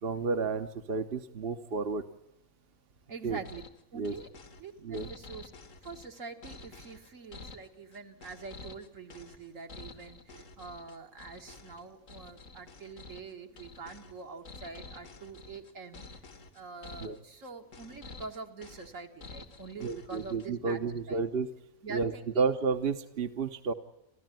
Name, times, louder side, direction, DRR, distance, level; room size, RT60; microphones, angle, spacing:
voice 1, 0.0-2.0 3.2-3.4 3.9-4.1 4.8-5.1 17.0-17.2 19.8-21.5 21.9-23.7, right 4 dB, 50° right, 7 dB, 1.2 m, -31 dB
voice 2, 3.1-3.6 3.9-4.3 4.6-5.5 5.8-16.1 16.5-20.8 21.1-21.2 21.8-22.5, right 4 dB, 70° right, 4 dB, 2.2 m, -45 dB
sound 1, 3.4-20.7, left 4 dB, 70° left, 1.9 m, -49 dB
28.5 x 13.5 x 9.2 m, 0.88 s
omnidirectional pair, 1.4 m